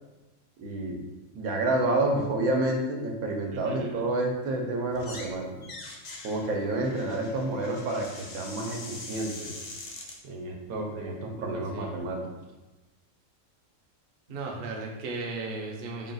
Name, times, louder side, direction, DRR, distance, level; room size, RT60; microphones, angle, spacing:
voice 1, 0.6-1.0 1.3-5.6 6.2-9.5 10.2-12.2, right 2 dB, 85° right, 1 dB, 1.1 m, -29 dB
voice 2, 3.5-4.0 11.3-12.0 14.3-16.1, right 3 dB, 55° right, 0 dB, 0.6 m, -36 dB
sound 1, 4.9-5.3 5.6-10.2, left 2 dB, 85° left, 0.4 m, -43 dB
3.8 x 2.3 x 3.9 m, 1.1 s
omnidirectional pair, 1.5 m